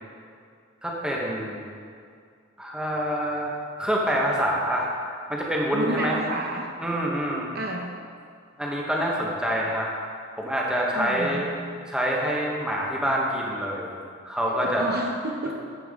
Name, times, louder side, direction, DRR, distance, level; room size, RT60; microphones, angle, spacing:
voice 1, 0.8-1.6 2.6-3.5 3.8-4.9 5.3-6.2 6.8-7.5 8.6-9.9 10.4-11.5 11.9-13.9 14.2-14.8, equal, 5° right, -3 dB, 1.1 m, -26 dB
voice 2, 5.7-6.7 7.5-7.9 10.9-11.5 14.5-15.5, right 1 dB, 50° right, 0 dB, 0.9 m, -30 dB
10.5 x 7.1 x 3.6 m, 2.3 s
head